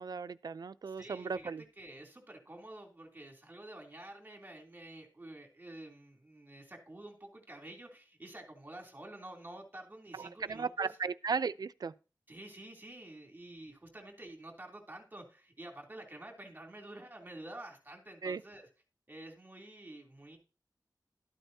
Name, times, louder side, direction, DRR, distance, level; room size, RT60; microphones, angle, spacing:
voice 1, 0.0-1.6 10.2-11.9 18.2-18.4, right 5 dB, 70° right, 0.5 m, -36 dB
voice 2, 0.9-11.0 12.3-18.7 19.1-20.4, right 1 dB, 25° right, 3.1 m, -49 dB
13.0 x 9.0 x 2.8 m
wide cardioid pair, 105°, 7 cm